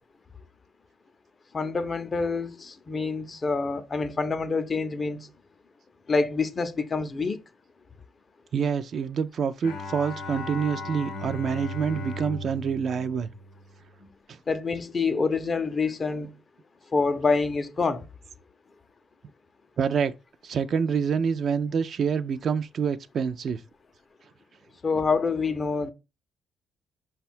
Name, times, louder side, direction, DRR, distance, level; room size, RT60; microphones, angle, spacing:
voice 1, 1.5-5.3 6.1-7.4 14.5-16.3 16.9-18.0 24.8-25.9, left 4 dB, 35° left, 0.5 m, -26 dB
voice 2, 8.5-13.3 14.3-14.4 19.8-20.1 20.4-23.6, right 6 dB, 55° right, 0.3 m, -27 dB
Bowed string instrument, 9.6-14.1, left 2 dB, 85° left, 0.7 m, -37 dB
5.1 x 2.2 x 4.3 m
cardioid pair, 90°, 0 cm